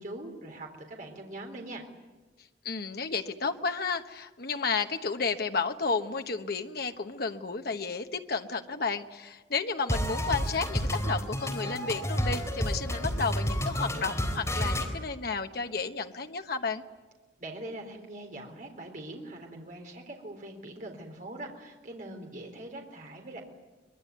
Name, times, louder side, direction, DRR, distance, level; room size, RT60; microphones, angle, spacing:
voice 1, 0.0-1.8 17.4-23.4, right 1 dB, 45° right, 2 dB, 3.8 m, -42 dB
voice 2, 2.6-16.8, left 4 dB, 60° left, 6 dB, 1.2 m, -32 dB
sound 1, 9.9-14.9, equal, 15° left, 3.8 m, -30 dB
24.0 x 22.0 x 9.5 m, 1.2 s
head